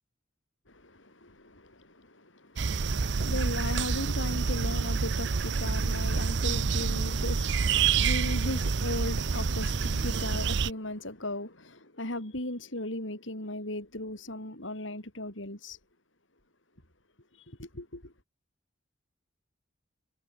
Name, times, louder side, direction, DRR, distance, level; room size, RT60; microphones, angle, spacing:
voice 1, 0.7-15.8 17.5-18.1, left 1 dB, 75° left, 7.0 m, -37 dB
sound 1, 2.6-10.7, right 5 dB, 60° right, 0.6 m, -28 dB
head